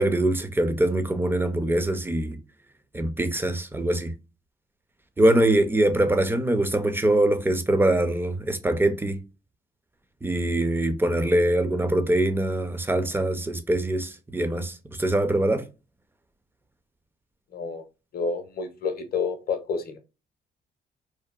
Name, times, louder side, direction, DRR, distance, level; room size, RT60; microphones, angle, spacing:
voice 1, 0.0-2.4 2.9-4.1 5.2-9.2 10.2-15.6, right 1 dB, 10° right, 0.4 m, -23 dB
voice 2, 17.5-17.8 18.1-20.0, left 5 dB, 50° left, 0.6 m, -29 dB
2.7 x 2.2 x 2.2 m
cardioid pair, 90°, 20 cm